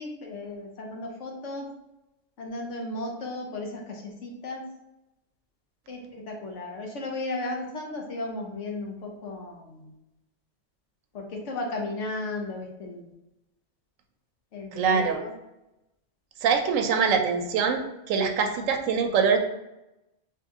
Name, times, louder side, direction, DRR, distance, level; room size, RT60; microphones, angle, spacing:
voice 1, 0.0-1.7 2.4-4.6 5.9-9.9 11.1-13.1 14.5-15.3, left 2 dB, 70° left, 1 dB, 1.0 m, -35 dB
voice 2, 14.7-15.2 16.4-17.8 18.1-19.4, right 6 dB, 85° right, 5 dB, 1.0 m, -23 dB
4.3 x 2.8 x 3.5 m, 0.93 s
omnidirectional pair, 1.3 m